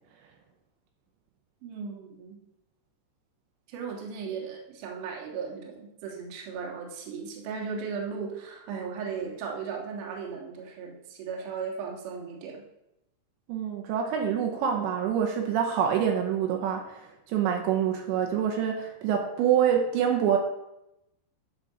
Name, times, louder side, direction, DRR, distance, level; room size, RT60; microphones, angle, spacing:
voice 1, 1.6-2.4 3.7-12.6, right 5 dB, 60° right, -1 dB, 2.3 m, -36 dB
voice 2, 13.5-20.4, right 8 dB, 80° right, 2 dB, 3.0 m, -26 dB
10.0 x 6.1 x 3.9 m, 0.87 s
omnidirectional pair, 5.4 m